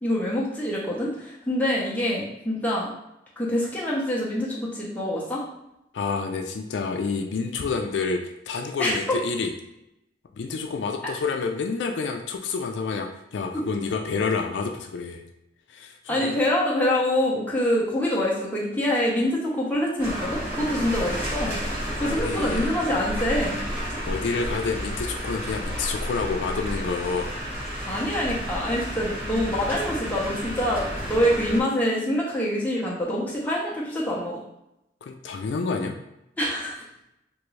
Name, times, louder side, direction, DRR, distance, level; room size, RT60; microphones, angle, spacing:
voice 1, 0.0-2.9 3.4-5.4 8.8-9.0 13.5-13.6 16.1-21.6 22.0-23.6 27.8-34.4 36.4-36.8, left 1 dB, 10° left, -5 dB, 0.7 m, -25 dB
voice 2, 5.9-8.2 8.5-9.5 10.4-15.2 15.7-16.4 21.9-22.7 24.0-27.3 35.0-36.0, left 4 dB, 70° left, 4 dB, 0.3 m, -28 dB
sound 1, 20.0-31.6, equal, 10° right, 1.0 m, -31 dB
3.5 x 2.5 x 3.1 m, 0.87 s
head